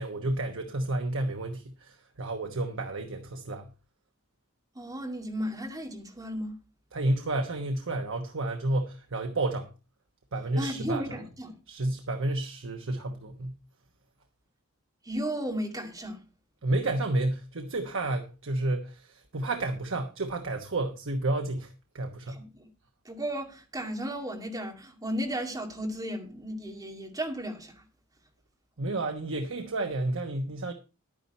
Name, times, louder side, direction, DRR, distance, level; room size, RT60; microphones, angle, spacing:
voice 1, 0.0-3.7 6.9-9.7 10.3-11.0 11.7-13.6 16.6-22.4 28.8-30.7, right 2 dB, 65° right, 1.1 m, -31 dB
voice 2, 4.7-6.6 10.6-11.6 15.0-16.2 22.3-22.7 23.0-27.8, equal, 15° right, 2.3 m, -34 dB
11.0 x 10.0 x 4.2 m
head